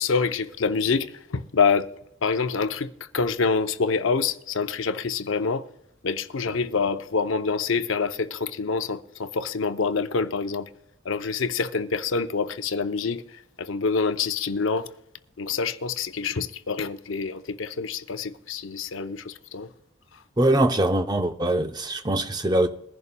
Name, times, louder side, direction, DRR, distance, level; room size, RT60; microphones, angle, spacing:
voice 1, 0.0-1.9 2.2-5.7 6.0-10.7 11.0-14.9 15.4-19.7, left 5 dB, 80° left, 0.6 m, -26 dB
voice 2, 20.4-22.7, right 1 dB, 20° right, 0.6 m, -22 dB
22.0 x 11.0 x 2.2 m
head